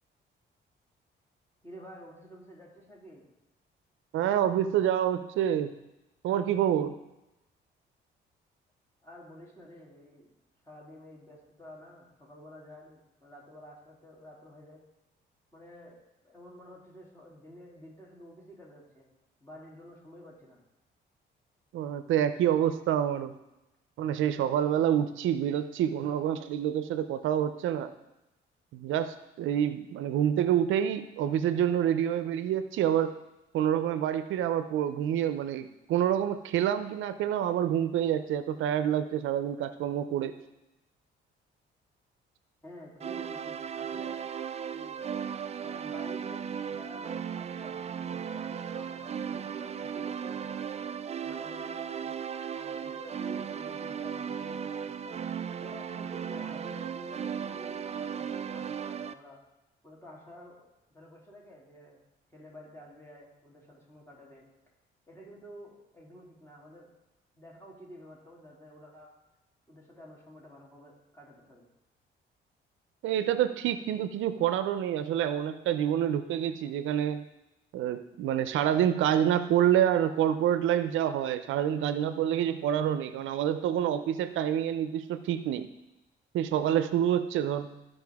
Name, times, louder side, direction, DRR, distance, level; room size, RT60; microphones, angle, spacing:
voice 1, 1.6-3.3 9.0-10.3 10.6-14.8 15.5-16.0 16.2-19.1 19.4-20.6 42.6-44.2 44.7-45.1 45.6-50.8 51.2-52.1 52.5-55.2 55.6-59.4 59.8-62.0 62.3-64.5 65.1-66.9 67.3-69.1 69.7-71.7, equal, 15° left, -3 dB, 3.0 m, -50 dB
voice 2, 4.1-5.7 6.2-7.0 21.7-23.3 24.0-27.9 28.7-33.2 33.5-40.3 73.0-77.3 77.7-85.7 86.3-87.8, right 10 dB, 80° right, 11 dB, 0.5 m, -27 dB
sound 1, 43.0-59.1, right 7 dB, 35° right, 0.4 m, -36 dB
13.5 x 5.4 x 3.5 m, 0.95 s
cardioid pair, 90°, 20 cm